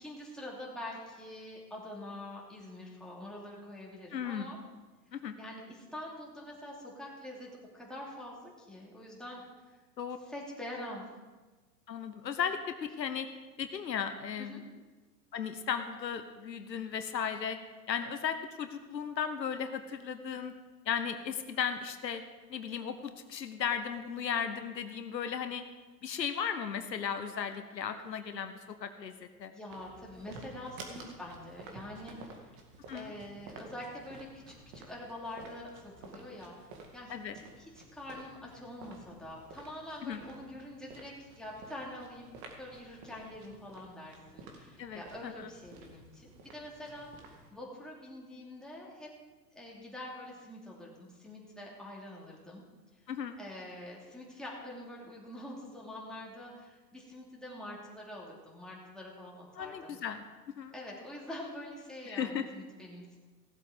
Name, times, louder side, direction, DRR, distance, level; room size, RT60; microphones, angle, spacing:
voice 1, 0.0-4.6 5.4-9.8 10.2-11.1 14.4-14.6 29.5-32.5 32.9-37.1 37.6-42.3 42.6-49.1 49.5-52.6 53.4-60.0 60.7-63.2, left 1 dB, ahead, -4 dB, 3.0 m, -45 dB
voice 2, 4.1-4.5 5.1-5.4 10.0-10.2 11.9-13.3 13.6-14.6 15.3-17.6 17.9-20.5 20.8-22.2 22.5-25.6 26.0-29.1 29.4-29.5 32.9-33.1 37.1-37.4 40.0-40.2 44.8-45.5 53.1-53.4 59.6-60.2 60.6-60.7 62.1-62.4, left 7 dB, 80° left, 8 dB, 1.1 m, -36 dB
sound 1, 29.7-47.5, right 3 dB, 40° right, 2.2 m, -52 dB
17.0 x 7.8 x 5.1 m, 1.3 s
hypercardioid pair, 105°, 50 cm